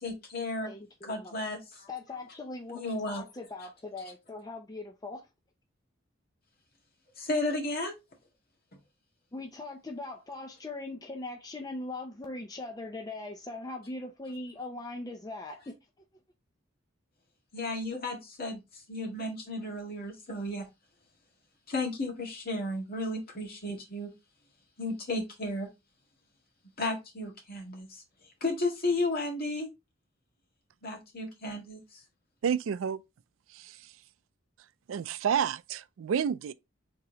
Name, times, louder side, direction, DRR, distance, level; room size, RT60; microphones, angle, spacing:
voice 1, 0.0-0.7 1.0-1.9 2.7-3.2 7.2-7.9 17.5-18.6 18.9-20.7 21.7-24.1 24.8-25.7 26.8-28.0 28.4-29.7 30.8-32.0, left 2 dB, 50° left, 1.8 m, -33 dB
voice 2, 0.6-1.4 1.9-5.2 9.3-15.8, left 2 dB, 20° left, 0.5 m, -40 dB
voice 3, 32.4-33.0 33.5-33.9 34.9-36.5, right 7 dB, 80° right, 0.4 m, -30 dB
4.9 x 3.7 x 2.8 m
head